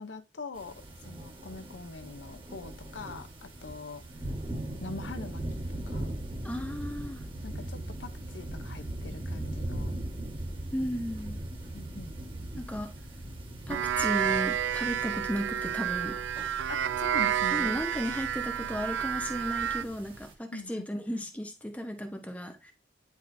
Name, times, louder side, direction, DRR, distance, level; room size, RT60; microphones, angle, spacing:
voice 1, 0.0-4.0 4.8-5.4 5.9-6.2 7.4-10.0 11.7-12.1 16.7-17.8 20.5-20.9, left 3 dB, 85° left, 0.8 m, -43 dB
sound 1, 0.5-20.3, right 1 dB, 30° right, 1.6 m, -40 dB
voice 2, 6.4-7.2 10.7-11.4 12.6-12.9 13.7-16.2 17.5-22.7, equal, 10° left, 1.0 m, -35 dB
sound 2, 13.7-19.8, right 9 dB, 85° right, 0.3 m, -30 dB
9.8 x 5.0 x 2.6 m
head